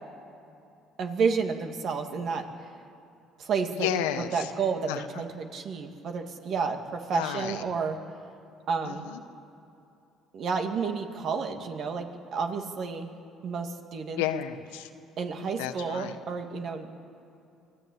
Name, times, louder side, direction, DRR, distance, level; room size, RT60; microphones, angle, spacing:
voice 1, 1.0-2.5 3.4-3.9 4.3-8.0 8.7-9.1 10.3-13.1 13.4-14.2 15.2-16.9, right 5 dB, 60° right, 4 dB, 2.4 m, -30 dB
voice 2, 3.7-4.5 4.9-5.2 7.1-7.6 8.8-9.3 14.2-14.9 15.6-16.2, left 10 dB, 90° left, 8 dB, 1.3 m, -32 dB
24.5 x 16.0 x 8.8 m, 2.7 s
supercardioid pair, 70°, 0 cm